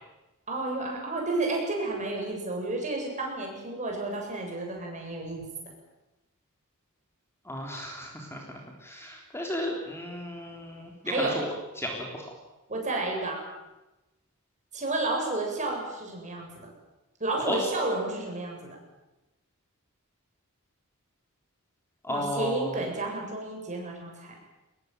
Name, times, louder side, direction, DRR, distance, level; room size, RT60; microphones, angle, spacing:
voice 1, 0.5-5.4 11.0-11.4 12.7-13.4 14.7-16.5 17.2-18.8 22.1-24.3, right 2 dB, 35° right, 0 dB, 7.8 m, -31 dB
voice 2, 7.5-8.4 8.8-11.5 11.8-12.1 17.4-17.6 22.0-22.7, left 1 dB, 10° left, 1 dB, 3.7 m, -33 dB
23.5 x 20.5 x 9.4 m, 1.0 s
head